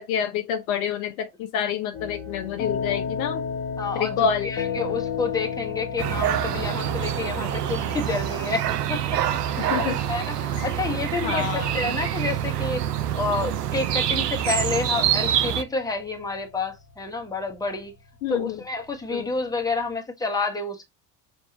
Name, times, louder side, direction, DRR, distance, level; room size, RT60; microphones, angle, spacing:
voice 1, 0.0-3.4 4.0-4.5 9.6-10.0 10.6-10.7 11.2-11.7 18.2-18.6 19.1-19.3, left 8 dB, 65° left, 0.8 m, -27 dB
sound 1, 1.9-19.9, left 6 dB, 35° left, 1.1 m, -35 dB
voice 2, 3.8-9.2 9.5-12.9 13.1-17.9 18.3-20.8, left 3 dB, 10° left, 1.2 m, -29 dB
sound 2, 6.0-15.6, right 11 dB, 85° right, 0.6 m, -26 dB
5.6 x 2.6 x 2.8 m
figure-of-eight pair, 65°, 47 cm